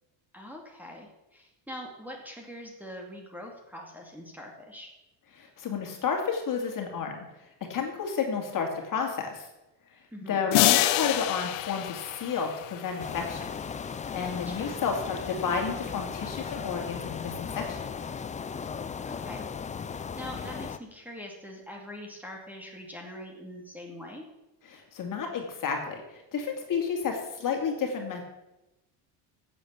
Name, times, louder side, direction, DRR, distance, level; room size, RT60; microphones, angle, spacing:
voice 1, 0.3-4.9 10.1-10.4 14.3-14.8 19.0-19.5 20.2-24.2, equal, 5° right, 0 dB, 2.3 m, -43 dB
voice 2, 5.3-7.3 7.7-9.5 10.3-13.5 14.1-17.8 24.7-28.3, left 6 dB, 45° left, 2 dB, 2.5 m, -31 dB
sound 1, 10.5-13.0, left 15 dB, 85° left, 0.8 m, -26 dB
sound 2, 13.0-20.8, left 6 dB, 15° left, 0.4 m, -37 dB
8.9 x 7.8 x 8.1 m, 0.98 s
cardioid pair, 120°, 44 cm